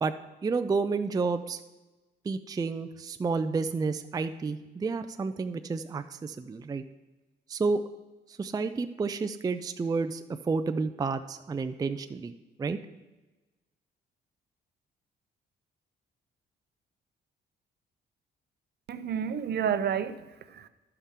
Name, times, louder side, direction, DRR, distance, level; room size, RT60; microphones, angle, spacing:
voice 1, 0.4-1.6 2.2-6.8 7.5-7.8 8.3-12.3 12.6-12.8, right 4 dB, 20° right, 9 dB, 0.4 m, -30 dB
voice 2, 18.9-20.7, right 8 dB, 55° right, 12 dB, 0.6 m, -30 dB
13.5 x 5.6 x 3.7 m, 1.1 s
cardioid pair, 90°, 20 cm